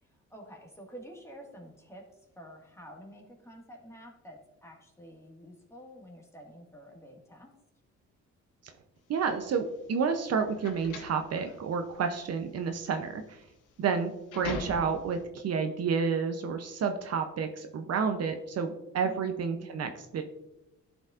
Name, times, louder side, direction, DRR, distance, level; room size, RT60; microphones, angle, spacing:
voice 1, 0.0-7.5 19.0-20.0, equal, 10° left, 0 dB, 1.8 m, -49 dB
voice 2, 9.1-13.4 13.8-20.2, right 5 dB, 55° right, 6 dB, 0.7 m, -30 dB
sound 1, 9.2-15.2, left 4 dB, 85° left, 1.3 m, -42 dB
12.0 x 5.1 x 2.5 m, 0.95 s
cardioid pair, 90°, 30 cm